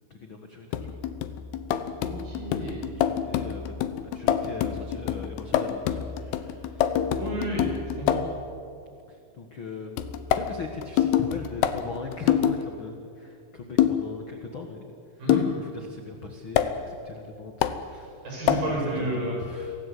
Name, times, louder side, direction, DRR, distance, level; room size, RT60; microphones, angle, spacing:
voice 1, 0.1-0.8 2.9-3.7 4.1-7.0 7.3-7.6 9.1-10.0 10.3-14.9 15.5-17.5 17.8-18.3 18.7-19.8, left 5 dB, 60° left, 4 dB, 1.3 m, -39 dB
sound 1, 0.7-8.4 10.0-12.6 13.8-14.1 15.3-15.6 16.6-16.7 17.6-17.8 18.5-18.7, left 10 dB, 85° left, 3.0 m, -26 dB
voice 2, 2.0-2.9 7.2-7.7 8.0-8.2 15.2-15.4 18.2-19.4, right 1 dB, 60° right, -2 dB, 8.2 m, -31 dB
25.5 x 17.5 x 8.4 m, 2.4 s
omnidirectional pair, 4.5 m